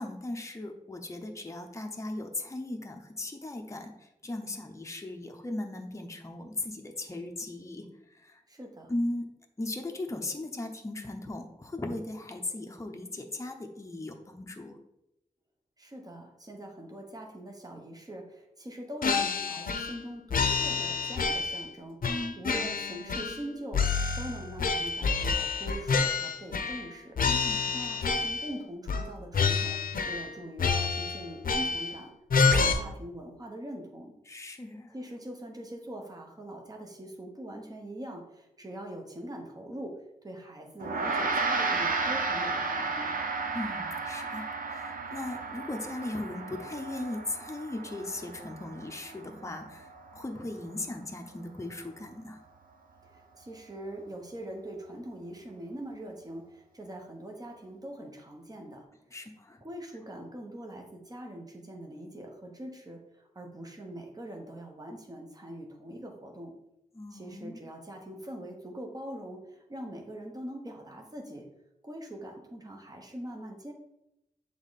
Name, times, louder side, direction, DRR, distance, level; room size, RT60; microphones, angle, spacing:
voice 1, 0.0-8.4 8.9-9.3 9.6-14.8 22.1-22.4 27.3-27.7 34.3-34.9 43.5-52.4 59.1-59.6 66.9-67.6, left 2 dB, 20° left, 3 dB, 0.7 m, -38 dB
voice 2, 8.5-8.9 15.8-27.2 27.7-32.1 32.4-34.1 34.9-43.2 53.0-58.9 59.6-66.5 67.1-71.5 71.8-73.7, right 1 dB, 25° right, 1 dB, 1.0 m, -43 dB
sound 1, 19.0-20.0 20.3-21.7 22.0-23.5 23.7-26.9 27.2-28.5 28.9-29.1 29.3-30.3 30.6-32.0 32.3-32.7, left 5 dB, 80° left, 0.6 m, -28 dB
Gong, 40.8-50.4, right 3 dB, 75° right, 0.7 m, -33 dB
7.1 x 3.6 x 4.1 m, 0.85 s
wide cardioid pair, 110°, 14 cm